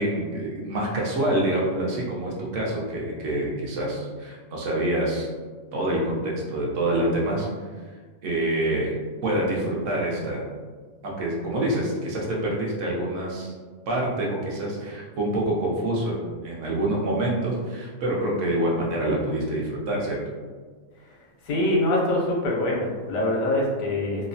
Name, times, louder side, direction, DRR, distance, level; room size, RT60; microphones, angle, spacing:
voice 1, 0.0-5.3 5.7-7.5 8.2-9.0 9.2-10.4 11.0-13.5 13.9-20.2, right 1 dB, 70° right, -3 dB, 1.0 m, -26 dB
voice 2, 21.4-24.3, left 1 dB, 90° left, -3 dB, 1.1 m, -24 dB
2.9 x 2.1 x 2.6 m, 1.5 s
omnidirectional pair, 1.4 m